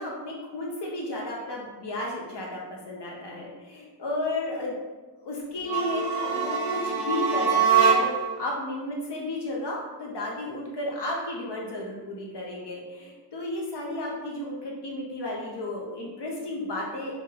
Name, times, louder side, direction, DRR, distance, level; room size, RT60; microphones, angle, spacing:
voice 1, 0.0-4.8 5.2-17.2, left 1 dB, 70° left, -2 dB, 0.6 m, -33 dB
sound 1, 5.6-8.4, right 6 dB, 55° right, 0.6 m, -23 dB
2.6 x 2.2 x 3.2 m, 1.3 s
wide cardioid pair, 55°, 43 cm